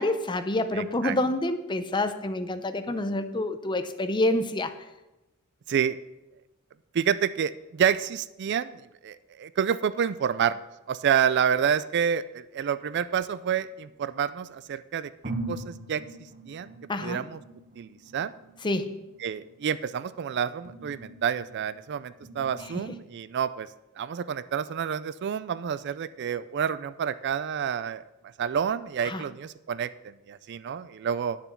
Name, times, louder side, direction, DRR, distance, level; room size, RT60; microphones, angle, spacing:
voice 1, 0.0-4.7 16.9-17.2 18.6-19.0 22.7-22.9 29.0-29.2, left 1 dB, 20° left, 9 dB, 0.6 m, -28 dB
voice 2, 0.7-1.2 5.7-6.0 6.9-10.6 10.9-15.1 15.5-16.0 16.5-16.7 17.0-17.4 17.8-18.3 19.2-23.7 24.0-28.0 28.4-31.4, right 8 dB, 50° right, 15 dB, 0.3 m, -28 dB
sound 1, 13.2-14.2 14.7-14.8 15.2-22.8, right 2 dB, 35° right, 1.2 m, -43 dB
10.0 x 6.9 x 5.9 m, 0.98 s
head